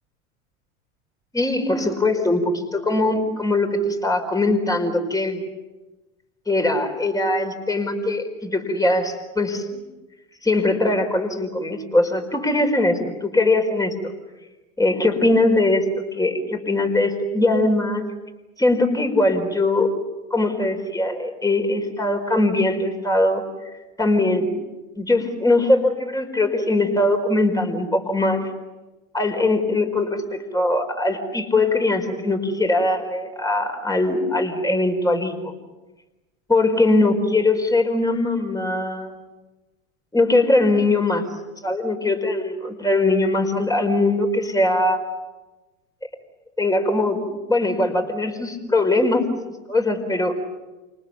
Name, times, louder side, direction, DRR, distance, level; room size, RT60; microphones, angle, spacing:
voice 1, 1.3-5.4 6.5-9.8 10.4-13.9 14.8-15.9 16.1-18.0 18.6-19.9 20.3-23.4 24.0-24.5 25.0-28.5 29.1-35.5 36.5-39.2 40.1-41.2 41.6-45.0 46.6-47.2 47.5-49.3 49.7-50.4, left 2 dB, 10° left, 5 dB, 4.9 m, -21 dB
30.0 x 28.0 x 7.2 m, 1.1 s
hypercardioid pair, 90°, 39 cm